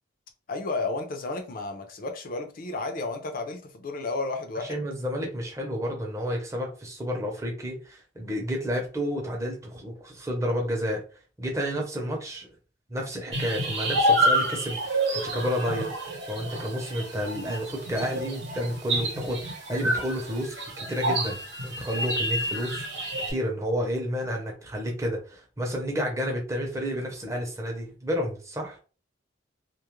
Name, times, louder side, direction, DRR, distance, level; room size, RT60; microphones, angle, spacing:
voice 1, 0.5-4.8, left 3 dB, 50° left, 0.4 m, -32 dB
voice 2, 4.6-11.0 11.4-12.5 12.9-15.9 16.3-21.4 21.6-28.8, equal, 15° right, 0.6 m, -30 dB
sound 1, 13.3-23.3, right 1 dB, 70° right, 0.8 m, -28 dB
2.3 x 2.0 x 3.0 m
head